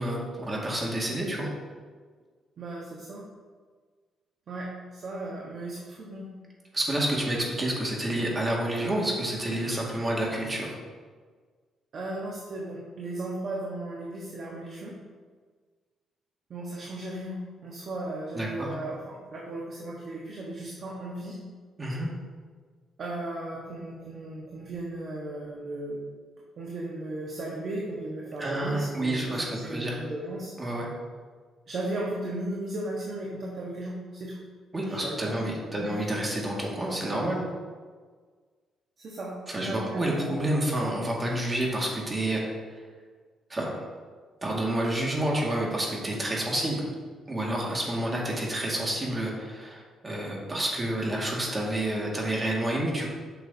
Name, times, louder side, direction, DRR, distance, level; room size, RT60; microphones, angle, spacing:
voice 1, 0.0-1.5 6.7-10.7 18.3-18.7 21.8-22.1 28.4-30.0 30.6-30.9 34.7-37.4 39.5-42.6 43.5-43.8 44.4-46.9 47.3-53.1, right 1 dB, 25° right, -2 dB, 2.0 m, -29 dB
voice 2, 2.6-3.2 4.5-6.3 11.9-14.9 16.5-21.4 23.0-26.0 26.6-30.5 31.7-34.4 34.9-35.5 35.8-36.0 39.0-40.4, right 1 dB, 55° right, -3 dB, 1.2 m, -36 dB
8.6 x 6.2 x 2.8 m, 1.5 s
cardioid pair, 90°, 0 cm